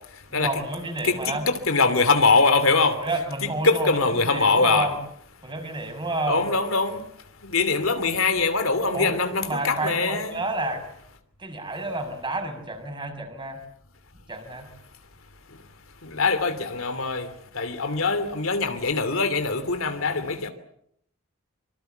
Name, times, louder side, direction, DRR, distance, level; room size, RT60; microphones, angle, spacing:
voice 1, 0.3-1.5 3.0-5.0 5.4-6.4 8.9-9.2 9.4-10.8 11.4-13.6 14.3-14.7, right 2 dB, 25° right, 6 dB, 6.2 m, -30 dB
voice 2, 1.0-3.0 3.6-4.9 6.3-7.0 7.4-10.4 16.0-17.3 17.5-20.5, left 4 dB, 70° left, 9 dB, 2.9 m, -22 dB
25.5 x 25.0 x 8.0 m, 0.70 s
head